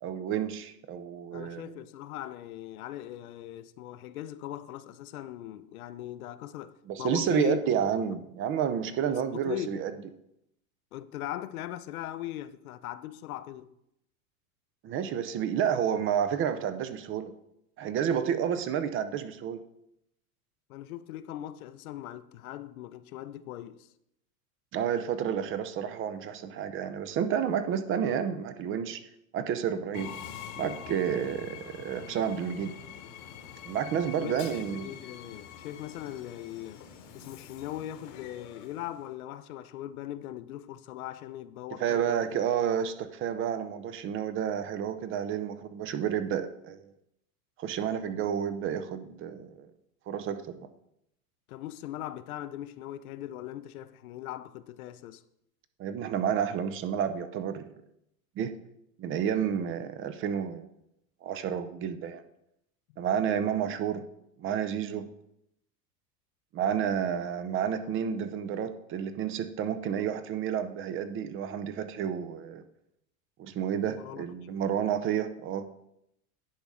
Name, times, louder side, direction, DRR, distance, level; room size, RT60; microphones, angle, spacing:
voice 1, 0.0-1.7 6.9-9.9 14.8-17.3 17.8-19.7 24.7-29.0 29.3-30.1 30.6-32.7 33.6-34.9 41.8-46.9 47.6-49.7 50.1-50.7 55.8-57.8 58.4-58.6 59.0-60.7 61.2-62.2 63.0-64.0 64.4-65.1 66.5-72.6 73.4-75.7, right 8 dB, 30° right, 0.5 m, -30 dB
voice 2, 1.3-7.7 9.1-9.8 10.9-13.7 20.7-23.9 34.2-36.8 37.1-42.3 51.5-55.2 73.9-74.6, left 13 dB, 75° left, 0.6 m, -40 dB
Train, 29.9-39.1, left 8 dB, 55° left, 1.1 m, -45 dB
10.5 x 4.0 x 4.8 m
hypercardioid pair, 115°, 43 cm